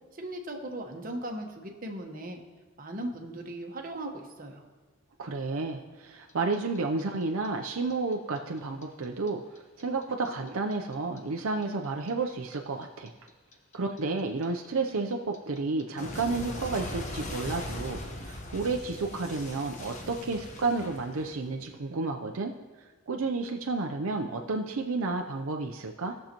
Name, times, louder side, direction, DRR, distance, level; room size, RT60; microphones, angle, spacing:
voice 1, 0.2-2.4 2.8-4.6, right 1 dB, 40° right, 2 dB, 1.1 m, -38 dB
voice 2, 5.2-9.4 9.8-13.1 13.7-22.5 23.1-26.1, right 3 dB, 75° right, 3 dB, 0.6 m, -31 dB
Clock, 6.3-9.3 9.6-12.5 12.8-21.7, left 1 dB, 35° left, 1.1 m, -40 dB
18.0 x 6.5 x 2.9 m, 1.3 s
head